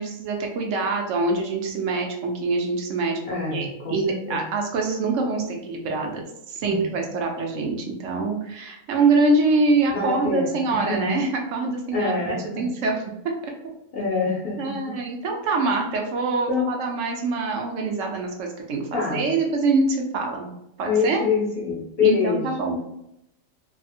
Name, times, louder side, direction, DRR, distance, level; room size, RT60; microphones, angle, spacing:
voice 1, 0.0-3.2 3.5-13.0 14.6-20.5 20.8-21.2 22.0-22.8, right 3 dB, 70° right, 2 dB, 0.9 m, -24 dB
voice 2, 3.2-4.5 6.6-7.0 9.9-11.1 11.9-12.6 13.9-14.9 15.5-15.6 16.5-16.7 18.9-19.3 20.8-22.5, left 5 dB, 55° left, -3 dB, 0.7 m, -26 dB
2.6 x 2.4 x 2.6 m, 0.82 s
omnidirectional pair, 1.4 m